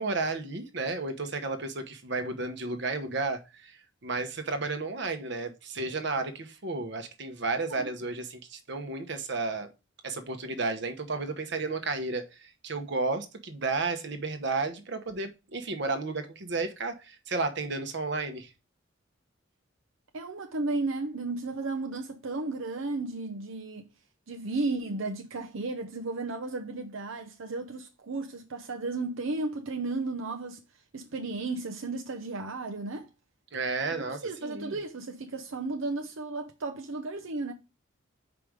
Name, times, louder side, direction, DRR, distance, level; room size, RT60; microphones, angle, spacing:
voice 1, 0.0-9.7 10.0-18.5 33.5-34.8, right 3 dB, 60° right, 1.0 m, -32 dB
voice 2, 20.1-23.9 24.3-30.6 30.9-33.1 33.9-37.5, right 3 dB, 80° right, 0.7 m, -34 dB
5.1 x 5.0 x 4.7 m
head